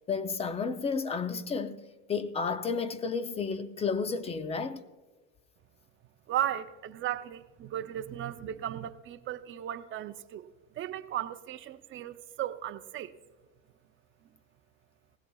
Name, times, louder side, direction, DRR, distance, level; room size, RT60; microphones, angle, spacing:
voice 1, 0.1-1.8 2.1-4.8, left 5 dB, 15° left, 0.5 m, -32 dB
voice 2, 6.3-10.5 10.8-13.1, right 11 dB, 30° right, 0.6 m, -36 dB
18.5 x 16.5 x 2.3 m
supercardioid pair, 135°, 39 cm